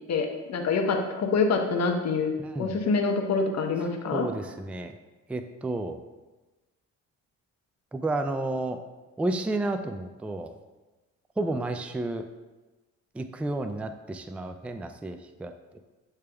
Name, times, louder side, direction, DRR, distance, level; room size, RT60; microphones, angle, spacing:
voice 1, 0.1-2.3 2.6-4.3, left 4 dB, 60° left, 4 dB, 0.9 m, -26 dB
voice 2, 2.4-2.8 4.1-5.0 5.3-6.0 7.9-8.8 9.2-10.5 11.4-12.2 13.1-15.5, right 2 dB, 5° right, 8 dB, 0.3 m, -31 dB
8.0 x 3.5 x 3.3 m, 1.2 s
cardioid pair, 90°, 30 cm